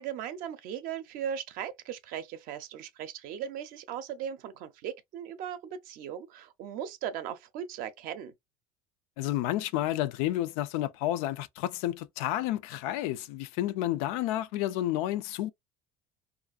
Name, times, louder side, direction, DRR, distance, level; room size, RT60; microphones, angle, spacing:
voice 1, 0.0-8.3, right 9 dB, 60° right, 0.5 m, -38 dB
voice 2, 9.2-15.5, left 14 dB, 90° left, 0.4 m, -30 dB
2.5 x 2.4 x 2.4 m
cardioid pair, 145°, 17 cm